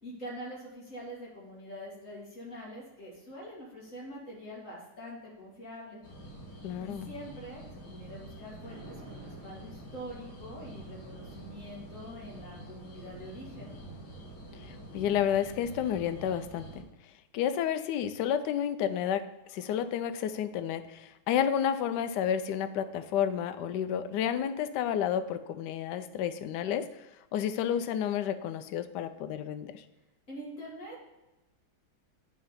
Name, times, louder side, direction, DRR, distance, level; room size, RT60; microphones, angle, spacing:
voice 1, 0.0-6.0 6.8-13.7 30.3-31.0, equal, 40° left, -4 dB, 2.3 m, -45 dB
sound 1, 6.0-16.8, right 1 dB, 55° left, 1.8 m, -47 dB
voice 2, 6.6-7.1 14.7-16.8 17.3-27.0 27.3-29.8, left 9 dB, 75° left, 10 dB, 1.0 m, -31 dB
Thunder, 8.2-16.0, right 1 dB, 65° right, 2.0 m, -53 dB
8.8 x 3.8 x 5.5 m, 1.0 s
omnidirectional pair, 2.2 m